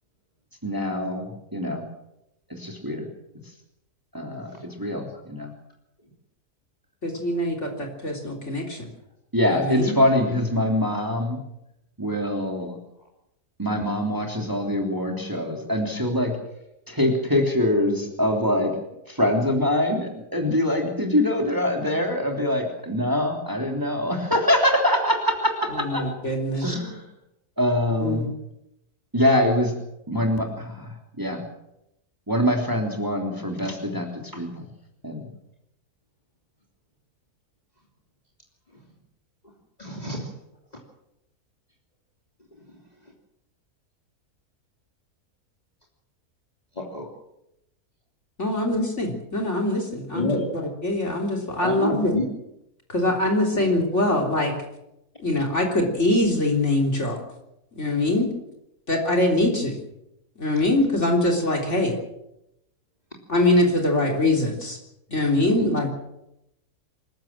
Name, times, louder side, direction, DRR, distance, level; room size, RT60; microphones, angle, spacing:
voice 1, 0.6-1.8 2.6-3.1 4.1-4.5 4.8-5.5 9.3-11.4 12.0-12.8 13.6-16.3 16.9-18.7 19.1-26.0 26.6-27.0 27.6-28.3 29.1-29.8 30.1-31.4 32.3-34.7 35.0-35.3, left 1 dB, 10° right, 2 dB, 3.3 m, -24 dB
voice 2, 7.0-8.9 9.5-9.9 25.7-26.7 28.0-28.3 48.4-52.1 52.9-54.5 55.2-57.2 57.8-58.3 58.9-59.8 60.4-62.0 63.3-64.8 65.1-65.9, left 1 dB, 45° left, 1 dB, 3.9 m, -23 dB
voice 3, 39.8-40.3 46.7-47.1 50.1-50.5 51.6-52.3 65.6-65.9, left 1 dB, 25° left, 0 dB, 3.3 m, -28 dB
25.5 x 15.5 x 7.5 m, 0.85 s
omnidirectional pair, 1.6 m